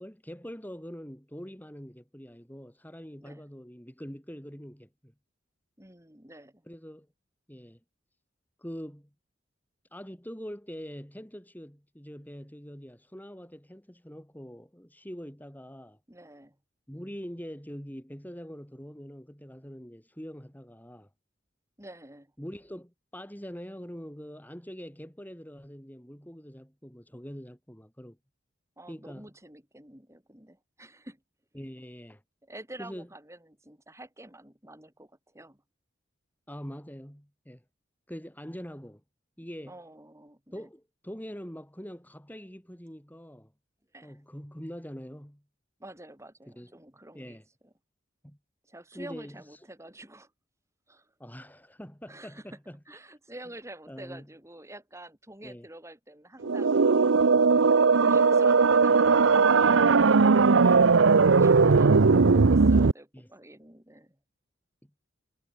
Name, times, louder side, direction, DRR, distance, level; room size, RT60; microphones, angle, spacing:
voice 1, 0.0-5.1 6.7-7.1 7.5-7.8 8.6-9.1 9.9-16.0 16.9-21.1 22.4-28.2 28.9-29.3 31.5-32.2 32.8-33.1 36.5-37.6 38.1-39.0 39.4-39.7 40.5-43.5 44.0-45.4 46.6-46.7 47.1-47.4 48.2-48.4 48.9-49.6 51.2-52.8 53.9-54.3 55.4-55.7 60.6-61.0 61.4-62.3 63.1-63.3, equal, 10° left, 3.9 m, -43 dB
voice 2, 5.8-6.7 16.1-16.6 21.8-22.3 28.8-31.2 32.4-35.6 39.6-40.7 43.9-44.2 45.8-47.4 48.7-50.3 50.9-51.1 52.1-52.4 52.9-57.1 57.9-59.8 61.1-64.2, right 1 dB, 15° right, 6.5 m, -48 dB
sound 1, 56.4-62.9, right 4 dB, 75° right, 0.7 m, -19 dB
head